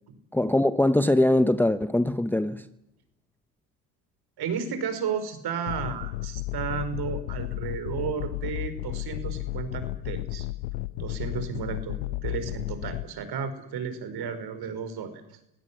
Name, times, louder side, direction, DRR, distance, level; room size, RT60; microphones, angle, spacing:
voice 1, 0.3-2.6, left 1 dB, 5° left, 0.9 m, -22 dB
voice 2, 4.4-10.5 11.0-15.4, right 6 dB, 55° right, 5.3 m, -33 dB
sound 1, 5.7-13.0, left 18 dB, 85° left, 1.0 m, -33 dB
25.0 x 17.0 x 10.0 m
supercardioid pair, 100°, 47 cm